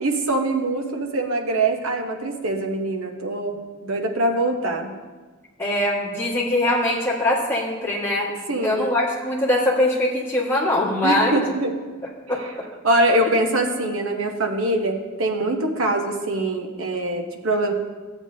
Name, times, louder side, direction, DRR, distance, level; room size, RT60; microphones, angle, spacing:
voice 1, 0.0-4.9 8.5-8.8 11.0-11.7 12.4-12.5 12.8-17.7, right 2 dB, 65° right, 3 dB, 1.0 m, -23 dB
voice 2, 5.6-8.3 8.6-11.4 12.3-12.4, left 1 dB, 10° left, -5 dB, 1.8 m, -22 dB
14.0 x 8.1 x 2.8 m, 1.3 s
head